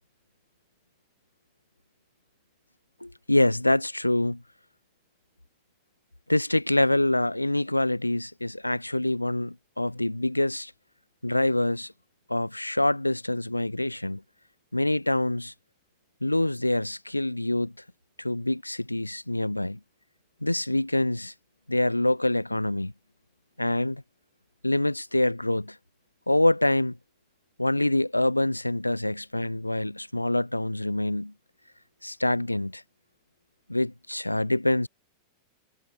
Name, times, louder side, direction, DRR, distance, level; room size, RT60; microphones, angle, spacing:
voice 1, 3.0-4.4 6.3-10.7 11.2-11.9 12.3-14.2 14.7-15.5 16.2-17.7 18.2-19.8 20.4-21.3 21.7-22.9 23.6-24.0 24.6-25.8 26.3-26.9 27.6-31.3 32.0-32.8 33.7-34.9, left 1 dB, 85° left, 0.6 m, -25 dB
figure-of-eight pair, 90°, 0 cm